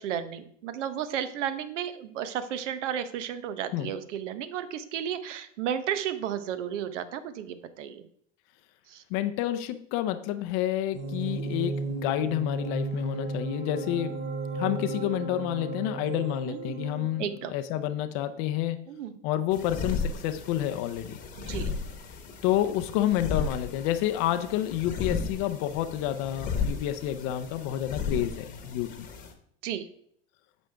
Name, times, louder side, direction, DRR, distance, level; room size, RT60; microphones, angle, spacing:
voice 1, 0.0-8.0 8.9-9.0 16.5-17.5 18.9-19.1 21.5-21.7 29.6-29.8, right 9 dB, 80° right, 11 dB, 1.0 m, -33 dB
voice 2, 9.1-14.2 14.5-18.9 19.2-21.2 21.5-21.7 22.4-29.1, left 12 dB, 40° left, 9 dB, 0.5 m, -29 dB
sound 1, 10.9-17.5, right 3 dB, 40° right, 2.8 m, -34 dB
sound 2, 19.5-29.3, left 4 dB, 20° left, 1.1 m, -35 dB
9.1 x 6.3 x 3.4 m, 0.65 s
supercardioid pair, 150°, 36 cm